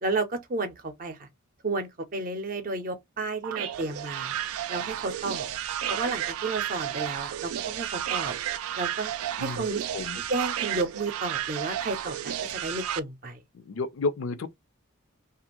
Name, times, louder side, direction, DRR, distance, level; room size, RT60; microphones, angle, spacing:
voice 1, 0.0-1.3 1.6-4.3 4.7-5.5 5.9-8.3 8.8-9.1 9.4-9.8 10.2-13.4, right 3 dB, 40° right, 0.6 m, -32 dB
sound 1, 3.4-13.0, right 11 dB, 80° right, 0.3 m, -32 dB
voice 2, 13.5-14.5, left 3 dB, 65° left, 0.5 m, -31 dB
2.5 x 2.4 x 2.9 m
head